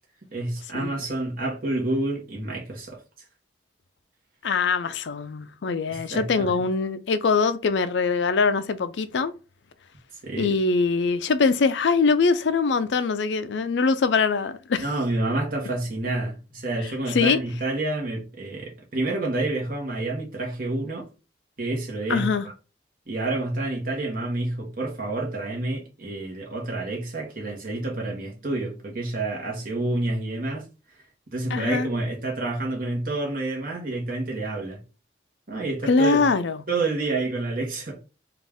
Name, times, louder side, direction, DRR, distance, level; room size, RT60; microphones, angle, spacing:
voice 1, 0.3-3.0 5.9-6.6 10.2-10.5 14.8-21.1 21.6-22.4 23.1-30.7 31.3-34.8 35.5-36.2 36.7-38.0, right 2 dB, 50° right, 1.3 m, -28 dB
voice 2, 4.4-9.3 10.4-14.8 17.1-17.4 22.1-22.5 31.5-31.9 35.9-36.6, left 4 dB, 80° left, 0.4 m, -23 dB
4.1 x 2.5 x 3.5 m
head